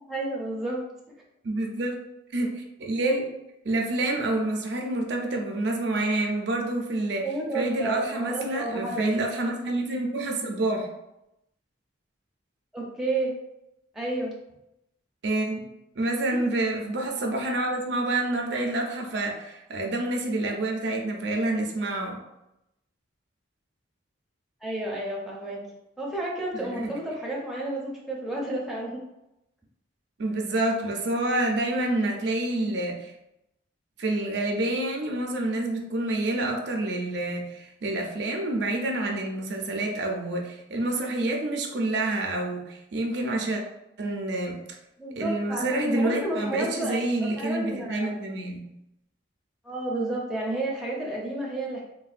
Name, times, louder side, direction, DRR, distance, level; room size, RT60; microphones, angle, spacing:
voice 1, 0.1-0.8 7.2-9.1 12.7-13.3 13.9-14.3 24.6-25.6 26.0-29.1 45.0-47.1 47.4-48.1 49.6-51.8, right 2 dB, ahead, -5 dB, 0.5 m, -31 dB
voice 2, 1.4-2.0 2.3-3.3 3.6-7.3 7.5-10.9 15.2-15.6 16.0-22.2 26.5-26.9 30.2-33.1 34.0-43.6 44.0-44.6 45.2-48.7, right 2 dB, 60° right, 1 dB, 0.4 m, -28 dB
3.2 x 2.2 x 2.4 m, 0.87 s
head